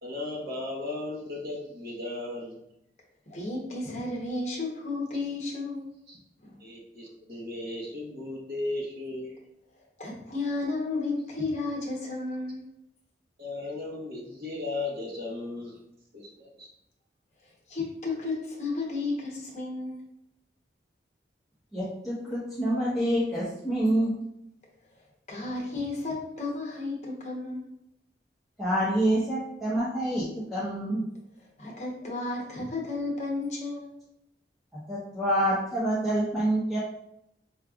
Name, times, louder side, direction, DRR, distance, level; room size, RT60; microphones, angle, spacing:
voice 1, 0.0-2.6 6.1-6.2 6.6-9.4 13.4-15.8 16.1-16.7, left 2 dB, 60° right, -4 dB, 1.2 m, -36 dB
voice 2, 3.3-5.9 6.4-6.5 10.0-12.6 17.7-20.0 25.3-27.6 31.6-33.9, left 3 dB, 40° left, -2 dB, 1.1 m, -33 dB
voice 3, 21.7-24.1 28.6-30.2 30.5-31.0 34.9-36.8, right 1 dB, ahead, -11 dB, 0.9 m, -27 dB
4.8 x 3.2 x 2.4 m, 0.80 s
head